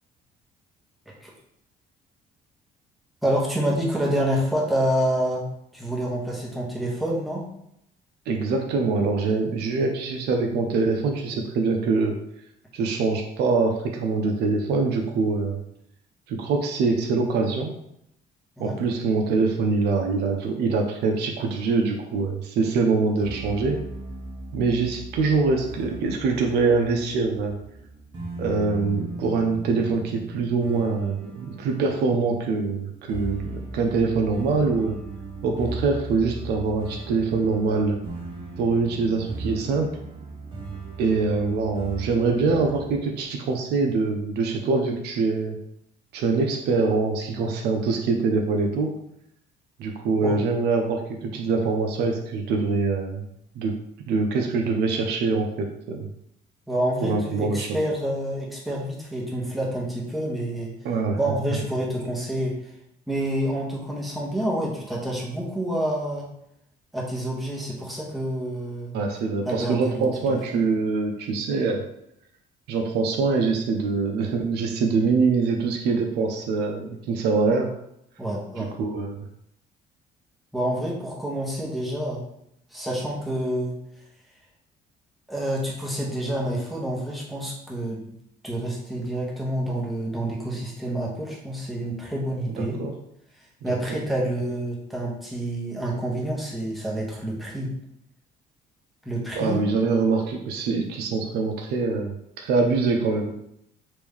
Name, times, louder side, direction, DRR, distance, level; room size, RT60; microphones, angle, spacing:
voice 1, 3.2-5.4 5.7-7.5 18.6-18.8 50.2-50.4 56.7-60.7 61.2-62.7 63.1-66.3 66.9-69.0 69.4-70.0 70.5-70.6 78.2-78.7 80.5-82.2 82.7-83.8 85.3-88.0 88.4-92.8 93.6-97.7 99.0-99.6, right 1 dB, ahead, -4 dB, 1.0 m, -28 dB
voice 2, 8.3-12.2 12.7-15.6 16.3-17.8 18.6-23.8 24.5-27.6 28.4-35.0 35.4-38.0 38.6-40.0 41.0-45.6 46.1-49.0 49.8-53.3 53.6-53.8 54.1-56.1 57.0-57.7 60.8-61.2 68.9-71.8 72.7-77.7 78.6-79.2 92.5-92.9 93.7-94.0 99.4-103.3, right 4 dB, 75° right, 2 dB, 0.5 m, -24 dB
sound 1, 23.2-43.0, right 3 dB, 30° right, 0.9 m, -38 dB
3.1 x 2.6 x 3.5 m, 0.76 s
cardioid pair, 110°, 17 cm